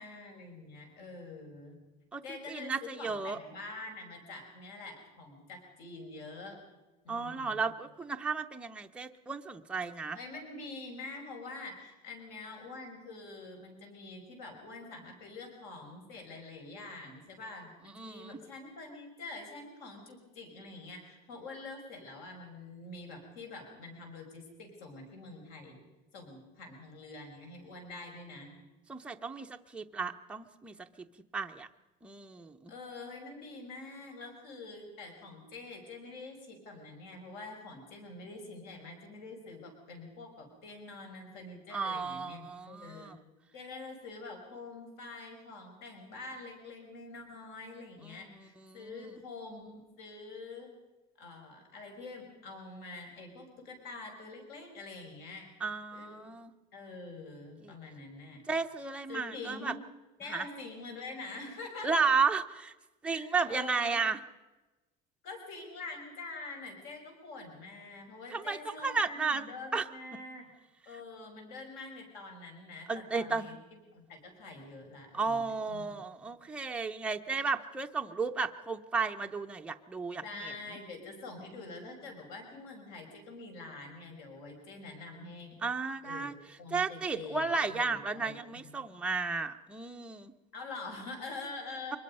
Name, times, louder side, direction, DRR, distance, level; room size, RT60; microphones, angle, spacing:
voice 1, 0.0-1.8 2.2-6.6 7.0-7.7 10.1-25.8 26.1-28.5 32.7-43.1 43.5-50.7 51.2-55.5 55.9-56.2 56.7-58.4 59.1-59.8 60.2-62.1 63.1-64.0 65.2-70.5 70.9-75.9 80.2-85.6 86.0-88.9 90.5-92.0, left 3 dB, 60° left, 3 dB, 6.0 m, -46 dB
voice 2, 2.1-3.4 7.1-10.2 17.9-18.4 28.9-31.1 31.3-31.7 32.0-32.7 41.7-43.2 48.0-48.3 48.6-49.0 55.6-56.5 57.6-57.7 58.5-59.7 60.3-60.5 61.8-62.7 63.0-64.2 68.3-69.9 72.9-73.6 75.1-80.5 85.6-86.3 86.7-90.3, right 4 dB, 5° right, 4 dB, 0.7 m, -33 dB
24.5 x 21.0 x 5.5 m, 1.1 s
cardioid pair, 175°, 18 cm